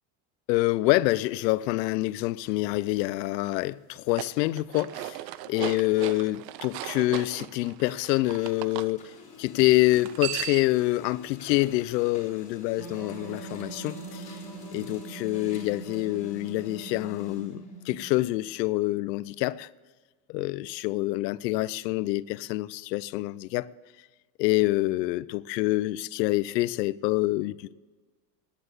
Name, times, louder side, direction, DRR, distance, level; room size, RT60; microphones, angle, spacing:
voice 1, 0.5-5.0 5.5-9.1 9.4-14.4 14.7-19.7 20.3-23.7 24.4-27.7, left 18 dB, 80° left, 0.7 m, -26 dB
sound 1, 4.0-8.9 9.9-10.8, right 16 dB, 75° right, 0.7 m, -37 dB
Printer, 7.3-8.6 8.8-18.4, left 6 dB, 15° left, 3.7 m, -49 dB
sound 2, 12.8-18.4, right 4 dB, 45° right, 3.7 m, -42 dB
11.0 x 10.0 x 8.1 m
supercardioid pair, 160°, 48 cm